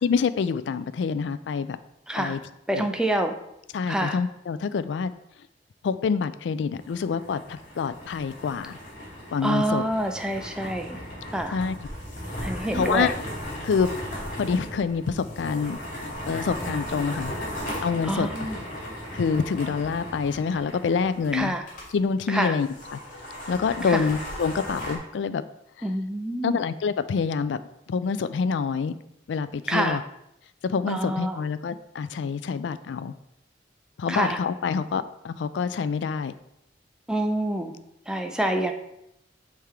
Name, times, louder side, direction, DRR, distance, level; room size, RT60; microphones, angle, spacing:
voice 1, 0.0-1.8 2.2-2.4 2.7-2.9 3.7-5.1 5.8-8.8 9.3-9.8 11.5-11.8 12.7-13.1 13.6-14.0 14.4-15.8 16.3-17.3 17.8-18.3 19.1-21.5 21.9-23.0 23.5-25.5 25.8-25.9 26.4-27.6 27.9-28.9 29.3-30.0 30.6-33.1 34.0-36.3, left 5 dB, 70° left, 14 dB, 0.3 m, -26 dB
voice 2, 2.7-3.3 3.9-4.2 9.4-11.0 11.3-11.6 12.4-13.1 18.1-18.6 21.3-21.6 22.3-22.5 23.9-24.0 25.8-26.6 29.7-30.0 30.9-31.4 34.1-34.4 37.1-37.7 38.1-38.7, right 1 dB, 5° right, 5 dB, 0.5 m, -26 dB
sound 1, 6.7-21.9 22.2-22.3 22.6-25.0, equal, 45° left, 2.1 m, -36 dB
6.6 x 3.5 x 4.4 m, 0.81 s
head